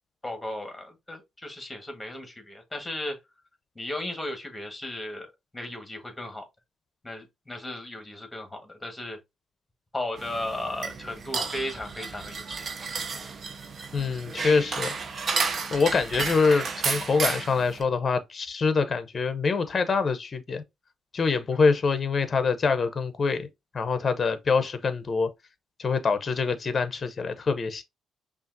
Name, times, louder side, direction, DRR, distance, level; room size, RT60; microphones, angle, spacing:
voice 1, 0.2-3.2 3.7-5.3 5.5-6.5 7.0-9.2 9.9-12.7, left 1 dB, 15° left, 1.4 m, -35 dB
sound 1, 10.2-17.8, right 5 dB, 45° right, 0.6 m, -32 dB
voice 2, 13.9-14.9 15.7-20.6 21.1-23.5 23.7-25.3 25.8-27.8, left 4 dB, 40° left, 0.7 m, -25 dB
5.5 x 2.4 x 2.6 m
cardioid pair, 85°, 0 cm